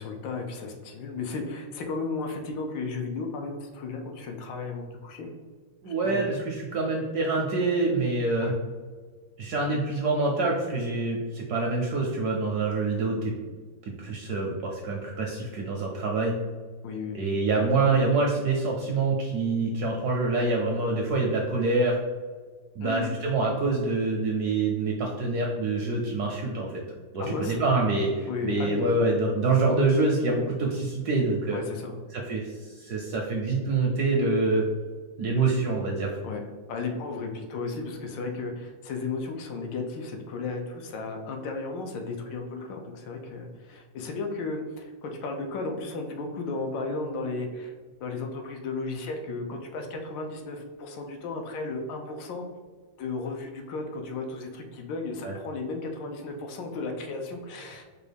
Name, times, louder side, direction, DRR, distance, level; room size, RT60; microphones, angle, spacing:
voice 1, 0.0-5.3 5.8-6.2 8.4-8.5 16.8-17.2 22.8-23.1 27.2-27.6 28.3-28.8 31.5-32.0 36.2-36.4 36.7-47.7 48.0-52.5 53.0-57.8, left 3 dB, 80° left, 3 dB, 1.3 m, -34 dB
voice 2, 5.8-8.5 9.4-13.3 14.0-16.4 17.1-22.0 22.8-26.8 27.1-31.6 32.1-34.6 35.2-36.1 55.2-55.3, right 3 dB, 75° right, -1 dB, 0.9 m, -26 dB
4.7 x 2.3 x 3.3 m, 1.5 s
omnidirectional pair, 2.1 m